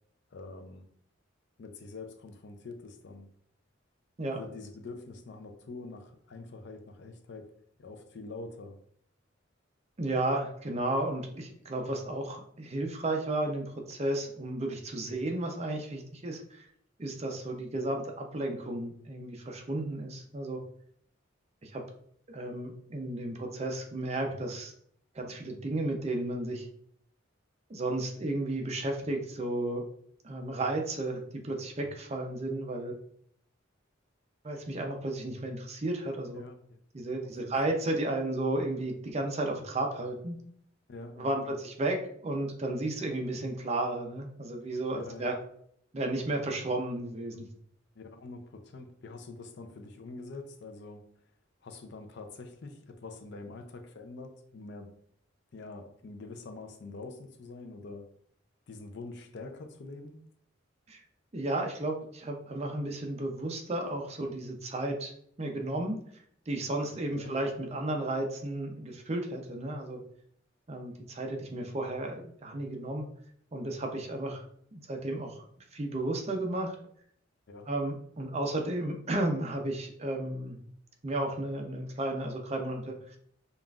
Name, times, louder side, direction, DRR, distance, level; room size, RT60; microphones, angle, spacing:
voice 1, 0.3-0.8 1.6-3.3 4.3-7.5 7.8-8.8 36.3-36.8 37.2-37.5 40.9-41.6 45.0-45.3 48.0-51.0 51.6-54.9 55.5-58.1 58.7-60.2 67.1-67.3 77.5-77.7, left 3 dB, 60° left, 6 dB, 0.5 m, -45 dB
voice 2, 10.0-16.6 17.0-20.6 21.6-21.8 22.3-24.7 25.1-26.7 27.7-29.8 30.2-33.0 34.4-36.4 36.9-40.4 41.2-45.4 45.9-47.5 60.9-61.0 61.3-65.1 65.4-66.0 66.5-70.0 70.7-73.1 73.5-74.4 74.7-75.5 75.7-76.7 77.7-80.6 81.0-83.2, right 1 dB, 35° right, 3 dB, 0.5 m, -33 dB
5.3 x 2.4 x 2.3 m, 0.65 s
head